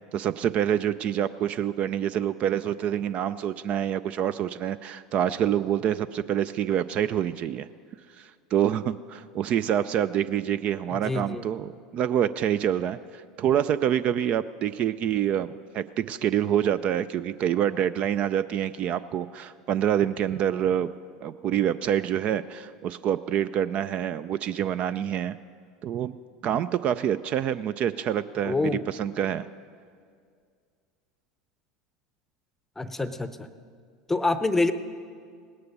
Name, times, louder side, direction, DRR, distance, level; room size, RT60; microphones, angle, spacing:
voice 1, 0.1-7.7 8.2-20.9 21.2-25.4 25.8-26.2 26.4-29.5, right 10 dB, 45° right, 15 dB, 0.3 m, -26 dB
voice 2, 10.9-11.4 28.4-28.8 32.8-33.5 34.1-34.7, left 2 dB, 10° left, 12 dB, 0.7 m, -26 dB
18.5 x 9.7 x 5.4 m, 2.1 s
hypercardioid pair, 80°, 3 cm